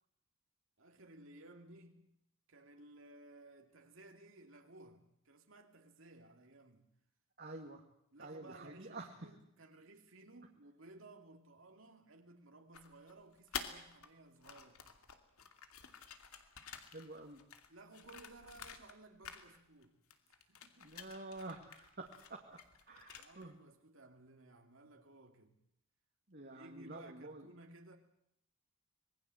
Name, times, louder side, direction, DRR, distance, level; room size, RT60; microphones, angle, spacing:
voice 1, 0.8-2.2 2.5-6.9 8.1-15.0 17.7-20.0 20.5-21.2 22.9-25.6 26.4-28.0, right 2 dB, 65° right, 2.5 m, -58 dB
voice 2, 7.4-7.8 8.2-9.2 16.9-17.4 20.8-22.6 22.9-23.6 26.3-27.5, right 2 dB, 45° right, 2.2 m, -49 dB
sound 1, 12.7-14.1 14.4-19.0 19.2-19.8 20.1-23.5, left 7 dB, 85° left, 2.6 m, -50 dB
26.0 x 21.0 x 7.8 m
head